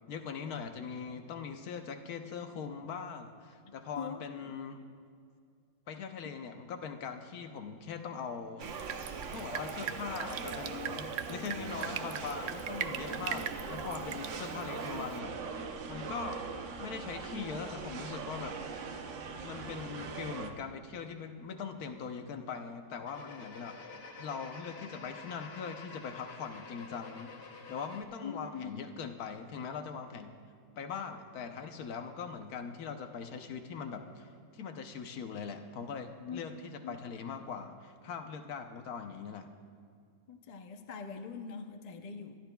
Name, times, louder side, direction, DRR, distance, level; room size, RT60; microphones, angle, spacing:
voice 1, 0.1-4.8 5.9-15.4 15.9-16.5 16.8-18.6 19.4-30.4 30.8-39.5, left 6 dB, 70° left, 6 dB, 1.2 m, -41 dB
voice 2, 3.6-4.9 6.2-6.3 28.2-28.8 36.2-36.5 36.8-37.0 40.3-42.4, left 6 dB, 50° left, 5 dB, 0.5 m, -43 dB
sound 1, 8.6-20.5, right 5 dB, 55° right, 1.0 m, -40 dB
Drip, 8.6-15.2, right 9 dB, 85° right, 0.5 m, -41 dB
sound 2, 23.1-28.0, left 4 dB, 85° left, 1.6 m, -48 dB
25.0 x 12.0 x 2.3 m, 2.2 s
omnidirectional pair, 1.7 m